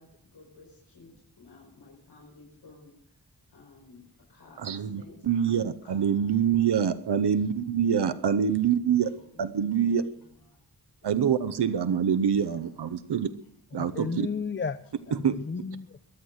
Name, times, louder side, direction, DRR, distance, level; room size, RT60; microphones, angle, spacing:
voice 1, 0.0-5.3 5.8-6.6 7.1-7.2 7.5-7.6 7.9-8.2 9.0-9.8 10.1-10.7 11.0-11.6 11.9-12.0 12.4-12.7 13.1-13.5 14.0-14.1 15.2-15.4, left 3 dB, 80° left, -1 dB, 5.1 m, -55 dB
voice 2, 4.6-9.1 9.4-10.0 11.0-13.3 13.7-14.3 15.2-15.3, right 8 dB, 85° right, 12 dB, 0.8 m, -25 dB
voice 3, 13.7-14.8 15.1-16.0, left 5 dB, 30° left, 12 dB, 0.7 m, -33 dB
22.0 x 9.6 x 6.4 m, 0.72 s
wide cardioid pair, 70°, 39 cm